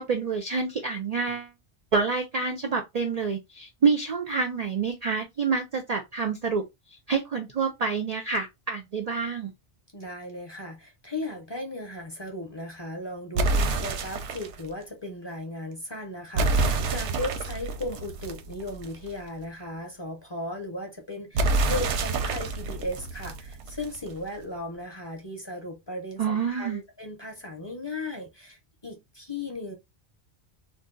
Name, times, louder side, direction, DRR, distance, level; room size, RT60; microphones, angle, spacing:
voice 1, 0.0-1.5 1.9-6.6 7.1-9.5 26.2-26.8, right 5 dB, 55° right, 0.4 m, -27 dB
voice 2, 9.9-29.7, left 1 dB, 30° left, 0.7 m, -36 dB
sound 1, 13.4-14.6 16.4-19.1 21.4-24.1, right 3 dB, 85° right, 0.9 m, -27 dB
2.6 x 2.3 x 3.7 m
omnidirectional pair, 1.2 m